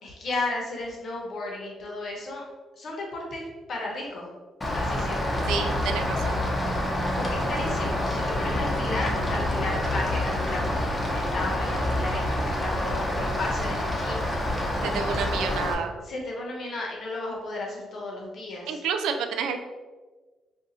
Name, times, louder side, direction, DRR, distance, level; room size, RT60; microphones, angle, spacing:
voice 1, 0.0-2.4 2.8-4.3 4.7-5.5 7.1-14.4 16.0-18.7, left 2 dB, 60° left, -1 dB, 1.0 m, -34 dB
Rain, 4.6-15.7, left 1 dB, 20° left, 0.7 m, -27 dB
voice 2, 5.5-6.4 14.8-15.9 18.7-19.6, right 6 dB, 85° right, 7 dB, 0.3 m, -29 dB
2.6 x 2.3 x 4.0 m, 1.3 s
cardioid pair, 80°, 0 cm